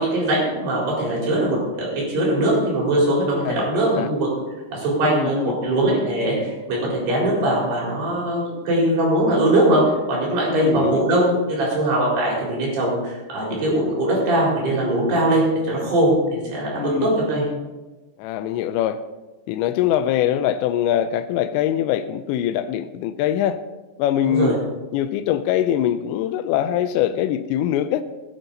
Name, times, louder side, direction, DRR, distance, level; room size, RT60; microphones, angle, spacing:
voice 1, 0.0-4.3 4.7-9.8 10.1-15.4 15.7-17.4 24.2-24.5, right 1 dB, 60° right, -4 dB, 6.1 m, -21 dB
voice 2, 3.4-3.7 4.0-4.1 5.0-5.5 10.5-11.0 16.8-17.1 18.2-19.0 19.5-23.6 24.0-24.5 24.9-28.0, left 11 dB, 85° left, 10 dB, 2.8 m, -23 dB
16.5 x 9.9 x 4.0 m, 1.2 s
omnidirectional pair, 5.2 m